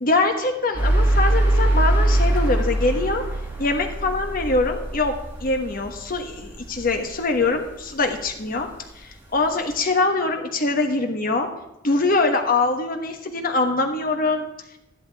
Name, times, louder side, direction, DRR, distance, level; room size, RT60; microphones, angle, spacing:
voice 1, 0.0-3.3 3.6-8.7 9.0-11.5 11.8-14.5, left 3 dB, 50° left, 5 dB, 1.2 m, -23 dB
sound 1, 0.7-6.9, right 1 dB, 10° right, 2.5 m, -22 dB
12.0 x 11.0 x 3.5 m, 0.89 s
head